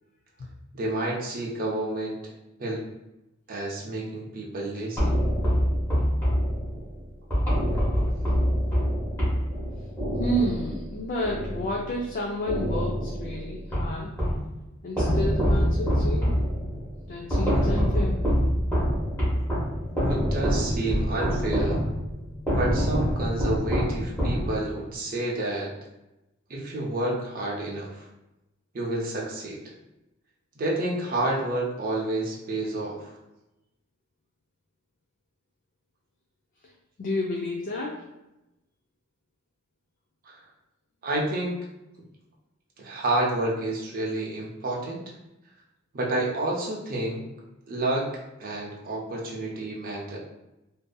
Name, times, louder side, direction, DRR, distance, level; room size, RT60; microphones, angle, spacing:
voice 1, 0.7-2.2 2.6-2.8 3.5-5.2 20.1-21.8 22.6-25.7 26.5-28.0 28.7-29.6 30.6-33.1 40.2-40.4 41.0-41.6 42.8-45.0 45.9-47.2 47.7-48.0 48.4-50.2, right 2 dB, 45° right, -3 dB, 0.5 m, -29 dB
sound 1, 5.0-12.1 12.5-14.5 15.0-24.9, equal, 10° left, 0.9 m, -25 dB
voice 2, 10.2-14.1 14.8-16.4 17.1-18.2 37.0-38.0, equal, 40° left, -1 dB, 0.3 m, -30 dB
2.5 x 2.5 x 2.2 m, 0.94 s
head